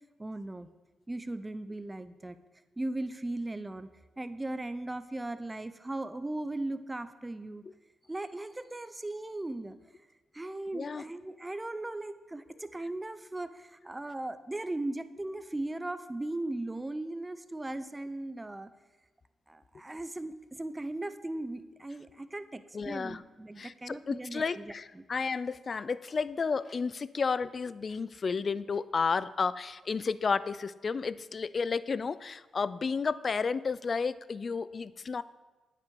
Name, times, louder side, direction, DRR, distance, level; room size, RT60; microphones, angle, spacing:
voice 1, 0.2-0.7 1.1-2.4 2.8-3.9 4.2-7.6 8.1-9.8 10.3-18.7 19.5-25.0, right 2 dB, 20° right, 12 dB, 0.7 m, -38 dB
voice 2, 10.7-11.0 22.7-23.2 23.6-35.2, left 5 dB, 50° left, 17 dB, 0.4 m, -32 dB
9.1 x 8.4 x 5.3 m, 1.2 s
supercardioid pair, 60°, 0 cm